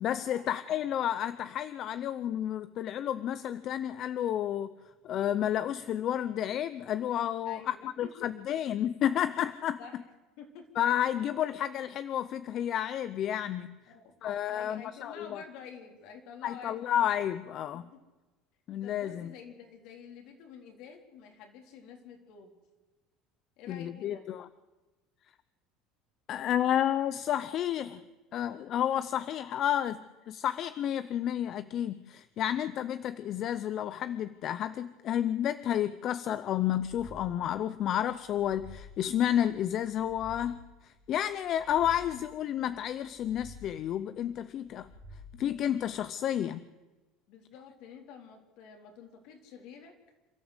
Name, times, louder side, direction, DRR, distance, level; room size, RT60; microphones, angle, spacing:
voice 1, 0.0-4.7 5.0-9.8 10.8-13.7 14.2-15.4 16.4-17.8 18.7-19.3 23.7-24.4 26.3-28.0 28.3-30.0 30.3-40.6 40.8-44.9 45.4-46.6, left 10 dB, 40° left, 14 dB, 0.6 m, -31 dB
voice 2, 7.4-8.3 9.1-9.2 9.8-10.0 10.4-10.8 11.2-11.3 13.9-14.1 14.5-16.8 17.8-18.0 18.8-22.5 23.6-24.2 47.3-49.9, left 6 dB, 65° left, 4 dB, 4.0 m, -49 dB
sound 1, 36.5-37.6 38.1-39.2 39.7-40.8 41.3-42.4 42.9-44.0 44.5-45.6, left 1 dB, 65° right, 3.4 m, -51 dB
27.5 x 13.0 x 8.2 m, 1.2 s
cardioid pair, 145°, 0 cm